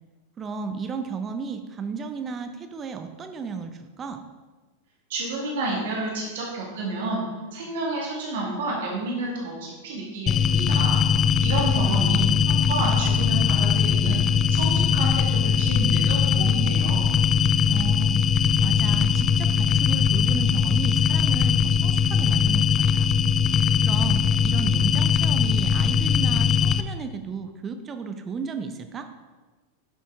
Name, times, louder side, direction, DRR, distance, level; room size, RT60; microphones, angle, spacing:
voice 1, 0.4-4.2 11.8-12.2 17.7-18.2 18.6-22.7 22.9-23.1 23.8-29.1, right 5 dB, 25° right, 7 dB, 0.6 m, -34 dB
voice 2, 5.1-7.2 7.5-11.0 11.4-14.2 14.5-17.1, right 2 dB, 55° right, -3 dB, 2.1 m, -30 dB
sound 1, 10.3-26.8, left 7 dB, 25° left, 0.4 m, -21 dB
10.5 x 7.2 x 3.6 m, 1.3 s
figure-of-eight pair, 90°, 0 cm